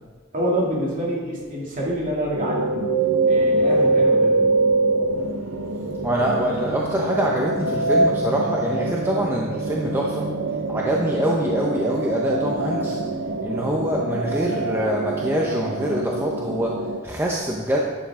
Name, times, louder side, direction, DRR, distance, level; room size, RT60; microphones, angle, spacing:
voice 1, 0.3-2.9 3.3-4.4 13.5-13.7, right 1 dB, 40° right, -4 dB, 2.5 m, -26 dB
sound 1, 2.4-17.0, right 2 dB, 70° right, 0.7 m, -24 dB
voice 2, 3.5-3.9 4.7-4.8 5.1-5.2 6.0-10.3 10.7-13.0 13.4-17.8, equal, 10° right, -2 dB, 0.7 m, -25 dB
11.0 x 8.7 x 3.7 m, 1.5 s
head